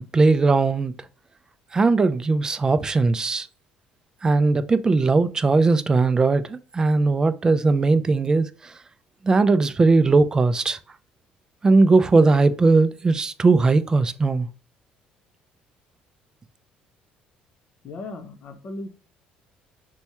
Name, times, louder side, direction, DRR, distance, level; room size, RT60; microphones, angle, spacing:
voice 1, 0.1-0.9 1.7-3.5 4.2-8.5 9.3-10.8 11.6-14.5, right 3 dB, 20° right, 0.3 m, -19 dB
voice 2, 17.8-18.9, left 2 dB, 50° left, 0.7 m, -36 dB
4.4 x 2.2 x 2.8 m
cardioid pair, 105°, 3 cm